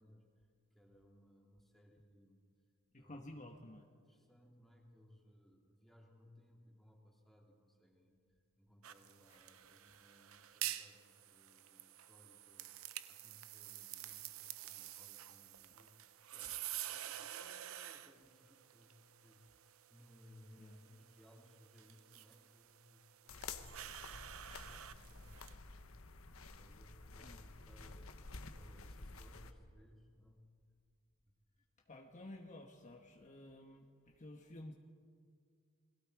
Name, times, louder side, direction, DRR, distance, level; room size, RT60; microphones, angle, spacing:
voice 1, 0.0-2.4 3.0-3.5 3.9-12.8 13.0-25.7 26.5-30.5 31.2-31.3, equal, ahead, -1 dB, 3.0 m, -64 dB
voice 2, 2.9-3.9 14.1-14.2 20.6-20.8 27.2-27.4 31.9-34.7, left 1 dB, 35° left, 2 dB, 1.3 m, -53 dB
sound 1, 8.8-25.5, right 12 dB, 70° right, 0.8 m, -49 dB
sound 2, 23.3-29.5, left 3 dB, 70° left, 1.3 m, -51 dB
29.5 x 21.5 x 4.9 m, 2.1 s
head